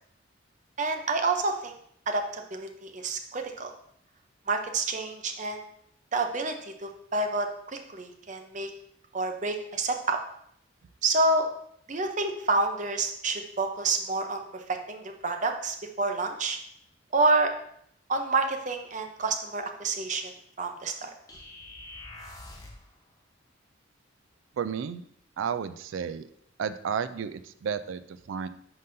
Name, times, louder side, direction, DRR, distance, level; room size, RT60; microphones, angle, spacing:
voice 1, 0.8-1.8 2.1-3.7 4.5-5.6 6.1-8.7 9.1-10.2 11.0-11.5 11.9-16.6 17.1-17.5 18.1-20.3 20.6-21.1, right 3 dB, 40° right, 5 dB, 0.6 m, -28 dB
sound 1, 21.3-22.9, left 2 dB, 20° left, 0.9 m, -45 dB
voice 2, 24.6-25.0 25.4-26.3 26.6-28.5, right 7 dB, 75° right, 13 dB, 0.3 m, -32 dB
10.5 x 3.9 x 2.6 m, 0.70 s
head